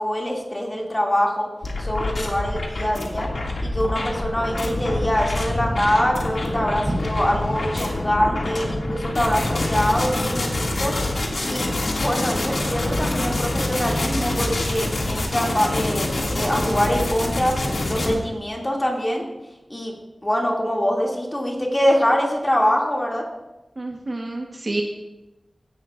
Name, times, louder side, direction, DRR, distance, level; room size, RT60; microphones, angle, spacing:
voice 1, 0.0-1.5 1.8-3.3 3.6-11.0 11.4-11.7 12.0-17.6 17.9-19.2 19.7-19.9 20.2-23.2, equal, 20° left, -2 dB, 2.4 m, -24 dB
sound 1, 1.6-18.1, left 1 dB, 80° left, 2.2 m, -26 dB
voice 2, 23.8-24.8, right 2 dB, 45° right, 1 dB, 1.2 m, -28 dB
16.5 x 11.0 x 2.5 m, 1.0 s
wide cardioid pair, 85°, 0 cm